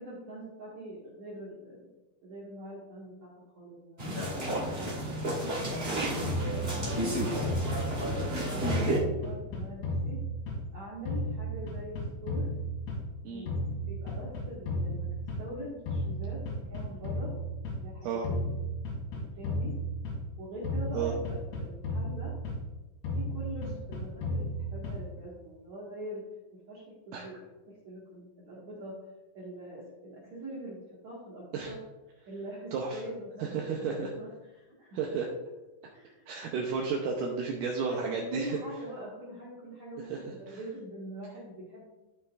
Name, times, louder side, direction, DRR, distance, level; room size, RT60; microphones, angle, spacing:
voice 1, 0.0-1.9 2.2-8.0 8.5-10.2 10.7-12.5 13.2-15.1 15.4-17.3 17.8-18.5 19.1-19.8 20.4-22.3 23.2-26.3 26.5-29.0 29.3-31.8 32.3-35.0 35.9-36.2 37.8-41.9, right 1 dB, 50° right, -7 dB, 2.7 m, -44 dB
sound 1, 4.0-9.0, right 1 dB, 30° right, 1.1 m, -31 dB
sound 2, 6.2-8.3 8.6-10.8 11.1-13.2 13.5-15.6 15.9-17.8 18.2-20.4 20.6-22.7 23.0-25.2, equal, 85° left, 4.5 m, -34 dB
voice 2, 33.4-34.1 34.9-35.3 36.3-38.6 40.1-40.2 40.5-40.6, right 5 dB, 80° right, 0 dB, 1.9 m, -32 dB
15.5 x 5.7 x 2.5 m, 1.1 s
omnidirectional pair, 4.8 m